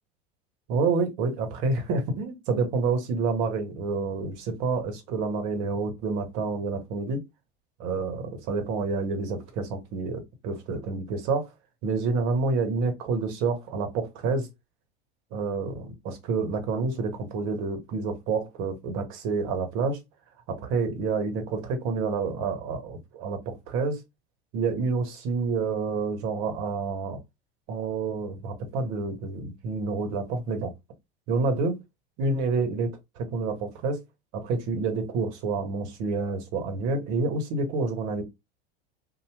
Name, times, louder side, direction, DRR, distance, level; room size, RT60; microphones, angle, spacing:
voice 1, 0.7-7.2 7.8-11.5 11.8-14.5 15.3-20.0 20.5-24.0 24.5-27.2 27.7-30.7 31.3-31.8 32.2-32.9 33.2-34.0 34.3-38.2, right 4 dB, 55° right, 1.2 m, -28 dB
2.8 x 2.1 x 3.3 m
hypercardioid pair, 85°, 32 cm